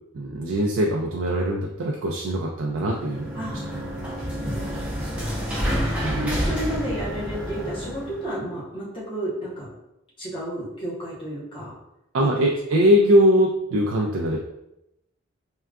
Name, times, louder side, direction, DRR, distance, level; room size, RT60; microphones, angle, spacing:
voice 1, 0.1-3.3 6.0-6.4 12.1-14.4, equal, 65° right, -1 dB, 0.3 m, -21 dB
sound 1, 2.7-8.3, equal, 5° right, 0.5 m, -29 dB
voice 2, 3.3-4.0 4.3-9.7 10.2-11.7 12.4-12.8, right 1 dB, 25° left, -5 dB, 0.8 m, -33 dB
3.6 x 2.2 x 2.3 m, 0.85 s
head